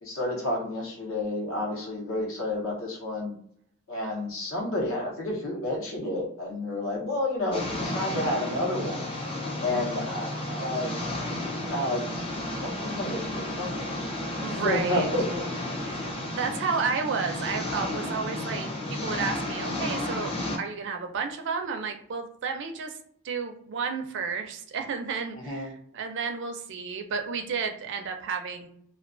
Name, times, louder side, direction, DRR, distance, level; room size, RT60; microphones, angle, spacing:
voice 1, 0.0-3.3 3.9-9.1 9.6-12.0 12.6-14.1 14.5-15.5 25.3-25.7, left 1 dB, 65° left, -2 dB, 0.8 m, -30 dB
sound 1, 7.5-20.6, left 1 dB, 25° left, 0.5 m, -32 dB
voice 2, 9.7-10.1 14.4-15.1 15.8-16.1 16.3-23.0 23.2-28.7, right 5 dB, 55° right, 5 dB, 0.4 m, -32 dB
2.3 x 2.2 x 2.4 m, 0.66 s
head